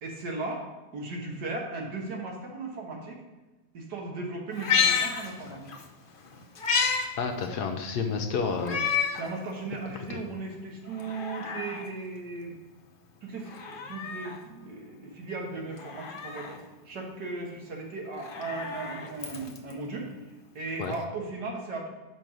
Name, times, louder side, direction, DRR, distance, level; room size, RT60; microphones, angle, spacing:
voice 1, 0.0-0.7 0.9-3.2 3.7-5.7 8.5-8.8 9.2-12.6 13.2-16.6 16.9-20.1 20.6-21.9, right 3 dB, 70° right, 0 dB, 1.8 m, -37 dB
Meow, 4.5-5.9 6.2-7.1 7.4-7.5 8.6-9.3 9.8-9.9 10.9-11.9 13.4-14.4 15.8-16.6 18.1-19.7 20.9-21.0, left 6 dB, 50° left, 0.6 m, -30 dB
voice 2, 7.2-8.8 9.9-10.2 20.8-20.9, left 5 dB, 70° left, 4 dB, 1.2 m, -30 dB
5.9 x 5.3 x 6.1 m, 1.2 s
omnidirectional pair, 1.9 m